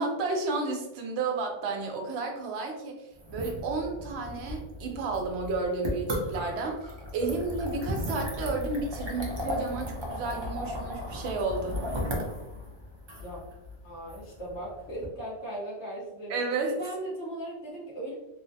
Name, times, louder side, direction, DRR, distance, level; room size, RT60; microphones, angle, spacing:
voice 1, 0.0-11.9 16.3-16.8, right 3 dB, 70° right, 3 dB, 0.8 m, -32 dB
sound 1, 3.2-15.1, equal, 40° right, 0.4 m, -36 dB
voice 2, 13.8-16.3 16.7-18.1, right 1 dB, 80° left, -4 dB, 1.3 m, -38 dB
3.1 x 2.0 x 2.6 m, 0.94 s
omnidirectional pair, 1.2 m